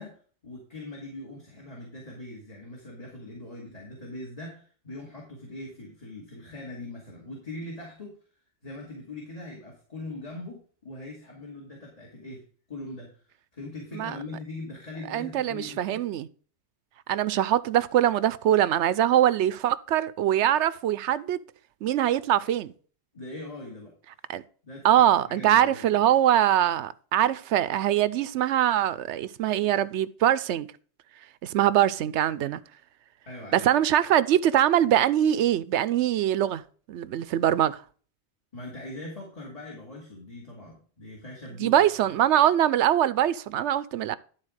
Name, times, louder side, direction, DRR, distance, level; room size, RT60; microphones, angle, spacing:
voice 1, 0.0-8.1 8.6-12.4 12.7-13.2 13.5-16.0 23.1-23.9 24.6-25.9 33.3-33.7 38.5-41.7, left 2 dB, 35° left, 2.5 m, -41 dB
voice 2, 15.1-16.3 17.1-21.4 21.8-22.7 24.3-24.4 24.8-30.7 31.4-32.6 33.5-36.6 36.9-37.8 41.6-44.2, right 11 dB, 80° right, 0.9 m, -23 dB
11.5 x 4.1 x 6.3 m
omnidirectional pair, 1.2 m